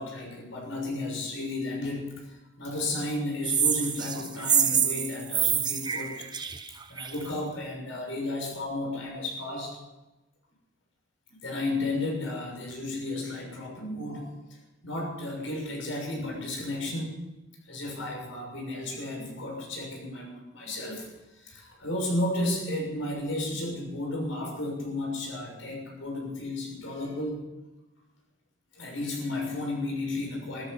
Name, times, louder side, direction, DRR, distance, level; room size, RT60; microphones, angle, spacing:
voice 1, 0.0-6.3 6.9-9.8 11.4-14.3 14.8-17.2 17.6-27.4 28.7-30.7, left 2 dB, 85° left, 0 dB, 6.6 m, -33 dB
sound 1, 3.4-7.2, right 7 dB, 20° right, 0.8 m, -26 dB
16.5 x 13.5 x 5.9 m, 1.0 s
head